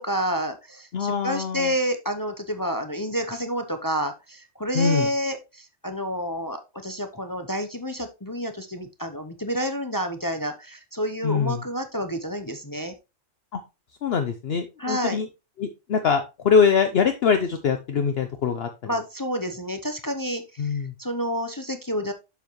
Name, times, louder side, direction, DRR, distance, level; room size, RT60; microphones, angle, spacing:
voice 1, 0.0-12.9 14.8-15.2 18.9-22.1, equal, 20° left, 7 dB, 0.6 m, -29 dB
voice 2, 0.9-1.7 4.7-5.1 11.2-11.6 13.5-13.6 14.0-15.3 15.6-18.7 20.6-20.9, left 6 dB, 55° left, 7 dB, 0.9 m, -23 dB
7.1 x 7.0 x 3.1 m, 0.26 s
omnidirectional pair, 1.3 m